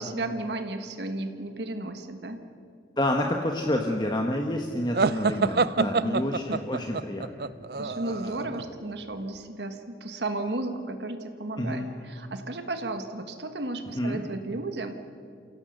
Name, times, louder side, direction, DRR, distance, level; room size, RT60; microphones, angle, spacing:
voice 1, 0.0-2.4 5.8-6.6 7.8-15.0, right 2 dB, 75° right, 7 dB, 1.5 m, -34 dB
voice 2, 3.0-7.5 7.8-8.6 11.6-11.9 13.9-14.2, left 1 dB, 25° left, 2 dB, 1.2 m, -29 dB
sound 1, 4.9-8.6, right 4 dB, 60° right, 0.5 m, -27 dB
29.0 x 17.0 x 6.7 m, 2.3 s
head